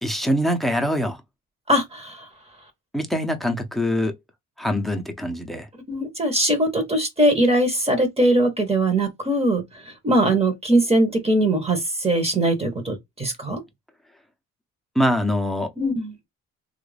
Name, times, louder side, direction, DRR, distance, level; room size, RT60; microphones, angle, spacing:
voice 1, 0.0-1.2 2.9-4.1 4.6-5.7 14.9-15.7, equal, ahead, 0.8 m, -23 dB
voice 2, 1.7-2.3 5.9-13.6 15.8-16.1, right 1 dB, 20° right, 1.1 m, -21 dB
3.1 x 2.5 x 3.3 m
cardioid pair, 90°, 30 cm